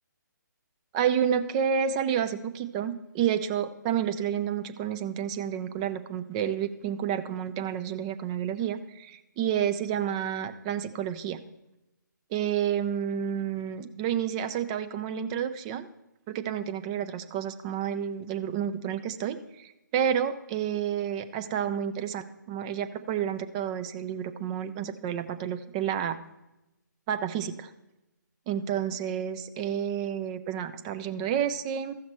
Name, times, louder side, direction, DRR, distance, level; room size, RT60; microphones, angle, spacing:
voice 1, 0.9-11.4 12.3-15.9 16.3-26.2 27.1-27.7 28.5-31.9, right 9 dB, 20° right, 9 dB, 0.5 m, -30 dB
15.0 x 5.8 x 4.3 m, 0.93 s
figure-of-eight pair, 140°, 10 cm